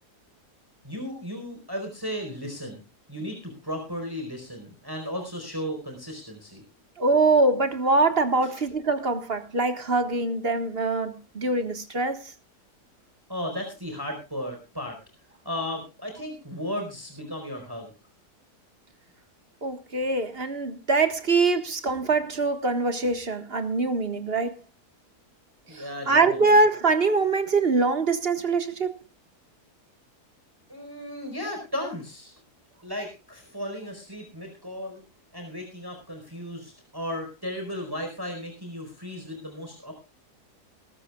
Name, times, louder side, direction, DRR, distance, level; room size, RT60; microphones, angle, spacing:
voice 1, 0.8-2.8 3.1-6.6 8.4-8.6 13.3-15.0 15.4-17.9 25.7-26.6 30.7-32.3 32.8-35.0 35.3-39.9, equal, 15° right, 4.4 m, -35 dB
voice 2, 7.0-12.3 19.6-24.6 25.7-28.9, right 3 dB, 40° right, 1.7 m, -23 dB
20.5 x 13.5 x 2.3 m
omnidirectional pair, 1.7 m